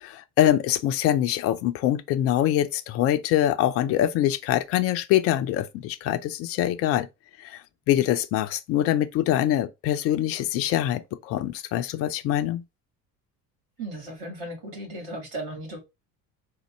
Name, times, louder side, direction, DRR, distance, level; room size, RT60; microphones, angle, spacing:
voice 1, 0.0-7.1 7.5-7.6 7.9-12.6, left 12 dB, 30° left, 0.4 m, -24 dB
voice 2, 13.8-15.8, right 1 dB, 50° right, 2.1 m, -36 dB
3.7 x 2.1 x 3.1 m
figure-of-eight pair, 60°, 49 cm